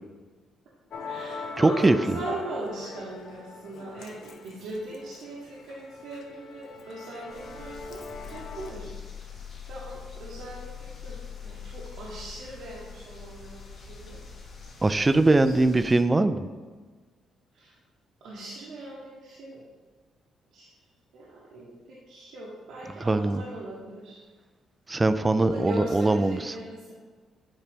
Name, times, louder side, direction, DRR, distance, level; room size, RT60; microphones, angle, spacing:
Musical instrument, 0.9-8.7, left 4 dB, 70° left, 0.7 m, -41 dB
voice 1, 1.0-8.0 8.3-8.9 9.7-14.2 14.9-15.5 17.5-17.8 18.2-19.6 20.5-20.8 21.1-24.2 25.2-26.9, right 1 dB, 80° right, -6 dB, 1.3 m, -39 dB
voice 2, 1.6-2.0 14.8-16.4 23.0-23.4 24.9-26.4, right 2 dB, 20° right, 11 dB, 0.4 m, -21 dB
sound 1, 7.3-16.0, left 6 dB, 50° left, 1.6 m, -43 dB
8.3 x 3.3 x 5.1 m, 1.4 s
cardioid pair, 90°, 0 cm